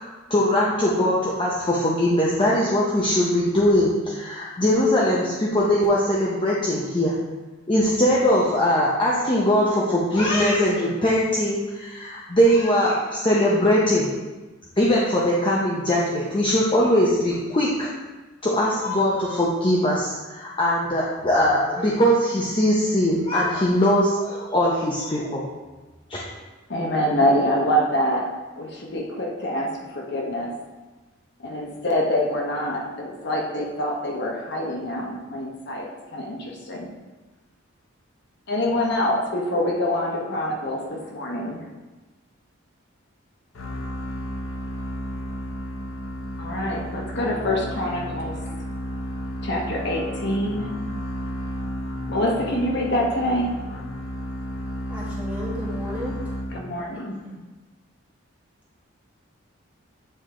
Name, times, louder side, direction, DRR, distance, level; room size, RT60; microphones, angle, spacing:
voice 1, 0.3-7.2 7.7-14.1 14.8-17.9 18.4-25.4 26.1-26.2, equal, 25° left, -5 dB, 0.8 m, -21 dB
voice 2, 26.7-28.3 28.6-30.5 31.4-36.9 38.5-41.6 46.4-48.4 49.4-50.7 52.1-53.5 56.5-57.2, left 1 dB, 55° left, -1 dB, 1.0 m, -25 dB
sound 1, 43.5-57.0, equal, 80° left, 0.7 m, -32 dB
voice 3, 54.9-56.2 56.9-57.4, left 1 dB, 10° right, -8 dB, 1.7 m, -34 dB
8.7 x 3.4 x 3.7 m, 1.2 s
head